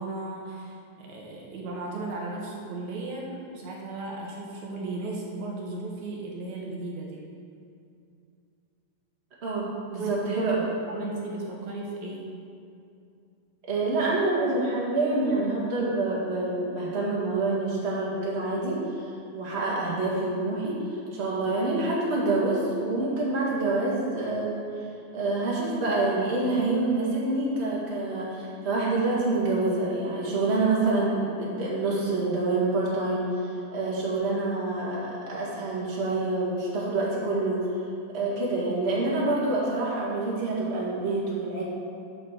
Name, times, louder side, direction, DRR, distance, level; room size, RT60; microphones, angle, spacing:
voice 1, 0.0-7.2 10.0-10.5 10.9-12.3, right 2 dB, 70° right, -2 dB, 2.3 m, -35 dB
voice 2, 9.4-10.6 13.7-19.0 19.3-20.8 21.1-24.7 25.1-37.6 38.1-41.6, right 2 dB, 25° right, -6 dB, 1.9 m, -27 dB
7.7 x 7.4 x 6.6 m, 2.5 s
omnidirectional pair, 3.6 m